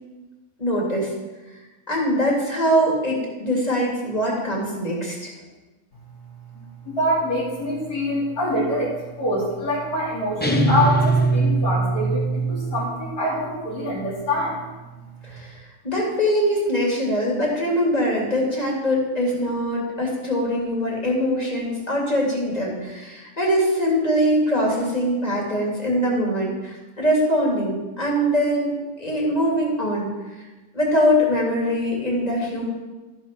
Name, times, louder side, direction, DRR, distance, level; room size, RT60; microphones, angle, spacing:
voice 1, 0.6-1.1 1.9-5.3 15.2-15.6 15.8-30.1 30.7-32.7, equal, 25° left, -3 dB, 2.6 m, -22 dB
voice 2, 6.9-14.6, equal, 75° left, -10 dB, 3.1 m, -25 dB
sound 1, 10.4-13.0, right 3 dB, 10° left, 0.6 m, -21 dB
13.5 x 5.4 x 6.0 m, 1.2 s
omnidirectional pair, 1.7 m